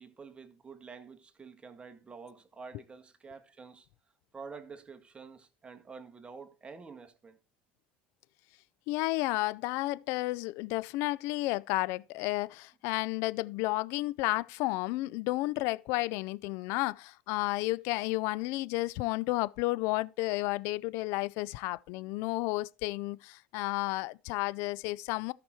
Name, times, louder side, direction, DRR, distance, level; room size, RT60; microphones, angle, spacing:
voice 1, 0.0-3.9 4.3-7.4, right 5 dB, 20° right, 1.7 m, -48 dB
voice 2, 8.9-25.3, left 20 dB, 65° left, 0.5 m, -32 dB
13.0 x 6.0 x 4.5 m
hypercardioid pair, 90°, 5 cm